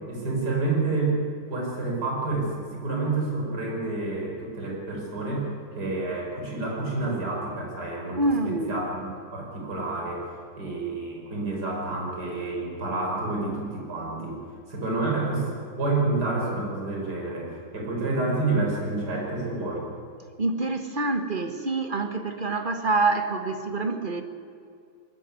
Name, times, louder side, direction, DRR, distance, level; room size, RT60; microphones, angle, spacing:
voice 1, 0.1-1.2 1.5-5.5 5.8-10.3 10.6-14.4 14.7-15.5 15.8-19.9, right 3 dB, 45° right, -1 dB, 5.3 m, -29 dB
voice 2, 8.1-8.7 20.4-24.2, right 3 dB, 30° right, 7 dB, 1.0 m, -26 dB
20.0 x 14.0 x 9.5 m, 2.4 s
omnidirectional pair, 2.4 m